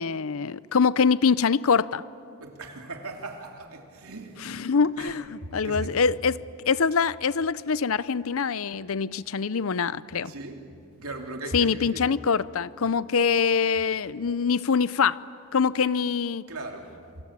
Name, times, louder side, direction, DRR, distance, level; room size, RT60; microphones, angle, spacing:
voice 1, 0.0-2.0 4.4-10.3 11.5-15.2 15.5-16.4, left 5 dB, 70° left, 0.6 m, -24 dB
voice 2, 2.4-4.7 5.0-5.1 5.4-5.9 10.2-10.6 11.0-12.1 16.5-17.0, right 2 dB, 85° right, 2.9 m, -38 dB
28.0 x 24.0 x 8.7 m
head